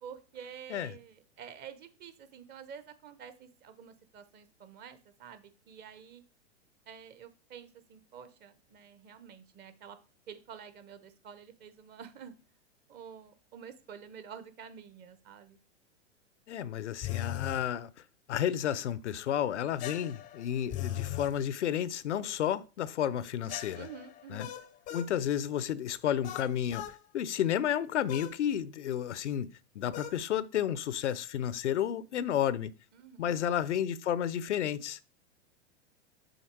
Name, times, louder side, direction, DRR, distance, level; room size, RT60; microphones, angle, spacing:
voice 1, 0.0-6.2 6.9-10.0 10.3-12.3 12.9-15.6 23.8-24.5 32.9-33.4, right 7 dB, 30° right, 0.8 m, -49 dB
voice 2, 16.5-17.9 18.3-23.9 24.3-24.5 24.9-29.5 29.8-32.7 33.2-35.0, left 10 dB, 80° left, 0.6 m, -31 dB
sound 1, 17.0-17.7 19.8-21.4 23.5-25.1 26.2-27.0 28.1-28.4 29.9-30.2, left 12 dB, 25° left, 0.5 m, -39 dB
6.5 x 4.2 x 4.5 m
hypercardioid pair, 110°, 35 cm